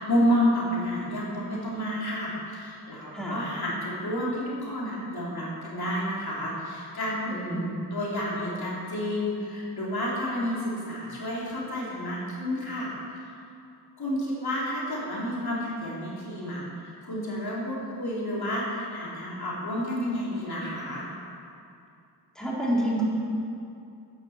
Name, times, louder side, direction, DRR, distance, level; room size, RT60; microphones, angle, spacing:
voice 1, 0.0-12.9 14.0-21.1, equal, 60° left, -5 dB, 3.8 m, -30 dB
voice 2, 7.3-7.6 22.4-23.0, right 1 dB, ahead, -6 dB, 3.7 m, -28 dB
11.5 x 10.5 x 7.4 m, 2.5 s
cardioid pair, 75°, 41 cm